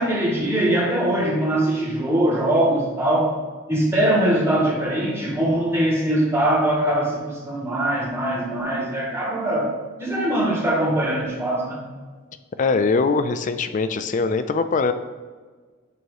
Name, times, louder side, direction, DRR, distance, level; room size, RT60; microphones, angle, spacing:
voice 1, 0.0-3.3 3.7-9.7 10.0-11.9, right 1 dB, 15° right, -4 dB, 1.6 m, -22 dB
voice 2, 12.6-14.9, left 4 dB, 40° left, 10 dB, 0.4 m, -22 dB
7.8 x 3.0 x 4.7 m, 1.4 s
head